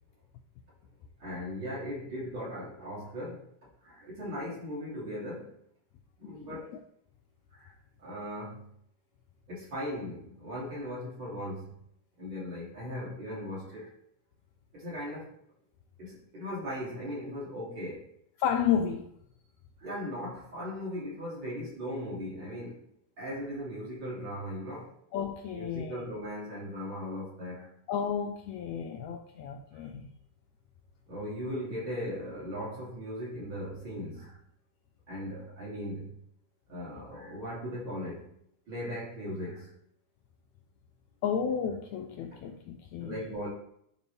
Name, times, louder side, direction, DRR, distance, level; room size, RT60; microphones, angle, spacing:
voice 1, 1.2-3.4 3.8-5.5 6.2-6.6 7.5-7.7 8.0-8.7 9.5-11.8 12.2-13.9 14.7-15.3 16.0-18.0 19.8-22.9 23.2-25.0 25.5-27.7 29.7-29.8 31.1-34.4 35.1-36.2 36.7-38.3 38.7-39.7 43.0-43.5, equal, 35° right, 3.0 m, -38 dB
voice 2, 6.2-6.7 18.4-19.1 25.1-26.0 27.9-30.1 41.2-43.2, left 8 dB, 85° left, 1.6 m, -32 dB
11.0 x 4.0 x 3.3 m
omnidirectional pair, 3.8 m